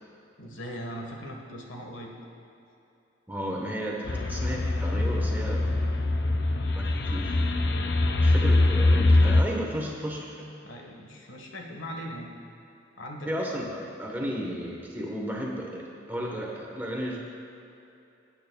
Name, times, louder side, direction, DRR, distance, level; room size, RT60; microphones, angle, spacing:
voice 1, 0.4-2.1 10.6-12.3 13.0-13.7, equal, 80° left, 1 dB, 1.4 m, -40 dB
voice 2, 3.3-6.0 6.7-7.4 8.2-10.6 13.3-17.2, equal, 10° right, -1 dB, 1.1 m, -34 dB
sound 1, 4.1-9.4, left 2 dB, 55° left, 0.5 m, -23 dB
17.5 x 8.7 x 2.3 m, 2.9 s
head